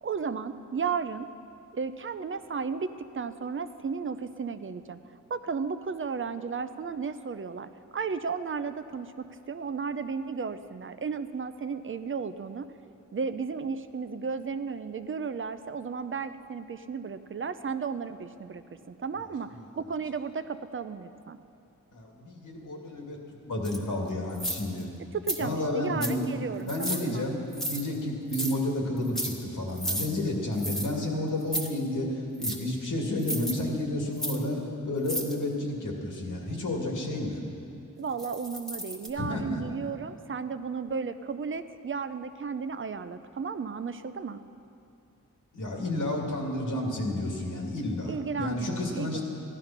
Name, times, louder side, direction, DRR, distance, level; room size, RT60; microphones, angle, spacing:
voice 1, 0.0-1.3 1.7-5.0 5.3-12.7 13.1-21.4 25.1-27.3 38.0-44.4 48.0-49.2, right 5 dB, 40° right, 11 dB, 0.5 m, -34 dB
voice 2, 21.9-23.2 23.4-24.9 25.4-26.3 26.6-27.4 27.7-34.6 34.8-37.4 39.2-39.6 45.5-49.2, left 1 dB, 80° left, 0 dB, 2.3 m, -31 dB
sound 1, 23.6-23.8 24.3-24.8 25.3-25.4 26.0-26.2 26.7-27.0 27.5-27.8 28.3-28.5 29.0-29.3 29.8-30.1 30.6-30.9 31.4-31.7 32.4-32.6 33.2-33.5 34.2-34.4 35.0-35.3 38.2-39.1, equal, ahead, 1.2 m, -33 dB
14.5 x 11.5 x 5.8 m, 2.6 s
wide cardioid pair, 130°, 31 cm